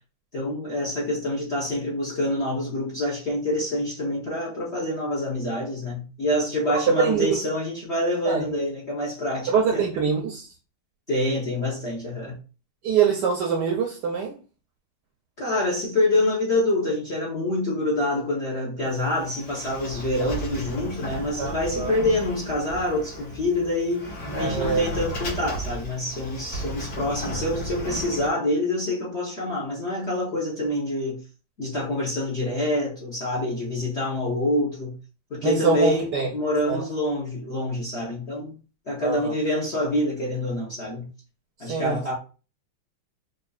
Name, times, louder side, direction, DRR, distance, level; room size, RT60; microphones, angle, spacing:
voice 1, 0.3-9.8 11.1-12.4 15.4-31.2 31.6-34.9 35.3-38.6 38.9-41.1 41.6-42.1, left 1 dB, 45° left, 0.9 m, -26 dB
voice 2, 6.7-7.3 8.3-8.4 9.5-10.5 12.8-14.3 21.4-21.9 24.3-24.8 35.4-36.3 36.7-36.8 39.0-39.3 41.6-42.0, right 6 dB, 70° right, 1.0 m, -24 dB
Sliding door, 18.9-28.3, equal, 70° left, 2.4 m, -34 dB
5.2 x 2.6 x 2.3 m
omnidirectional pair, 2.3 m